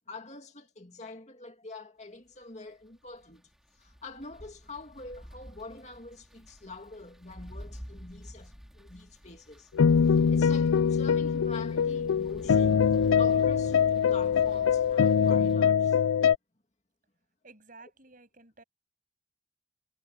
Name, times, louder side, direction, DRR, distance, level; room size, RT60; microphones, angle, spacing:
voice 1, 0.1-3.4 3.8-9.7 10.3-12.9 13.2-16.0, left 3 dB, 35° left, 2.6 m, -45 dB
sound 1, 2.8-15.5, equal, ahead, 3.8 m, -49 dB
sound 2, 9.8-16.4, left 7 dB, 85° left, 0.4 m, -23 dB
voice 2, 17.4-18.6, right 3 dB, 40° right, 7.2 m, -53 dB
head